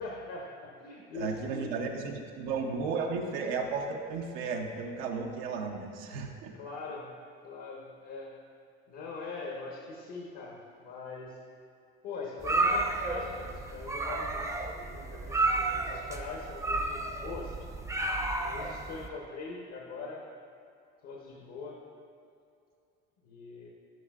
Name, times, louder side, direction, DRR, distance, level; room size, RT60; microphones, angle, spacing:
voice 1, 0.0-1.7 6.6-7.1 7.4-8.3 8.9-11.4 12.0-18.1 18.4-20.2 21.0-21.8 23.2-23.7, left 3 dB, 60° left, -2 dB, 1.0 m, -42 dB
voice 2, 1.1-6.5, right 4 dB, 85° right, 2 dB, 0.7 m, -34 dB
sound 1, 12.4-19.1, right 2 dB, 10° right, 0.5 m, -31 dB
10.5 x 5.6 x 2.4 m, 2.5 s
supercardioid pair, 85°, 29 cm